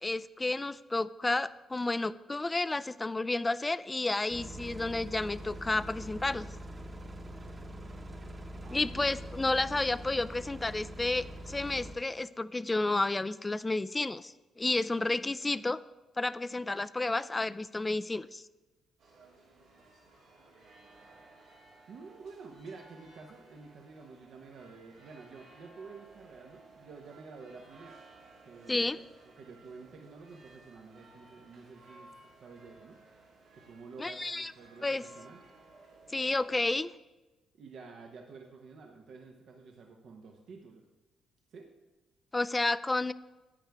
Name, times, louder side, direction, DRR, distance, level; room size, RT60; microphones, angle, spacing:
voice 1, 0.0-6.4 8.7-15.8 16.2-18.4 28.7-29.0 34.0-34.5 34.8-35.0 36.1-36.9 42.3-43.1, left 2 dB, 20° left, 15 dB, 0.3 m, -31 dB
sound 1, 4.3-11.9, right 1 dB, 25° right, 1.0 m, -44 dB
voice 2, 8.6-9.2 21.9-28.0 28.4-32.1 32.4-33.0 33.5-35.4 37.6-40.8 41.5-41.7, right 4 dB, 70° right, 2 dB, 0.9 m, -50 dB
sound 2, 19.0-36.8, right 3 dB, 90° right, 3.0 m, -58 dB
9.9 x 9.2 x 3.5 m, 1.1 s
cardioid pair, 90°, 0 cm